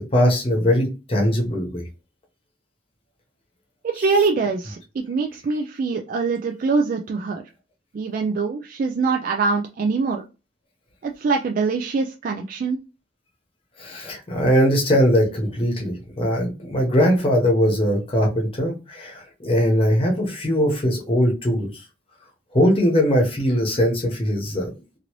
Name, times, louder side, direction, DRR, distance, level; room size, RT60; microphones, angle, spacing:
voice 1, 0.1-1.8 13.8-21.7 22.5-24.7, equal, 30° left, 1 dB, 0.9 m, -20 dB
voice 2, 3.8-7.4 7.9-10.2 11.0-12.8, right 4 dB, 50° right, 3 dB, 0.3 m, -23 dB
2.9 x 2.6 x 2.9 m, 0.30 s
head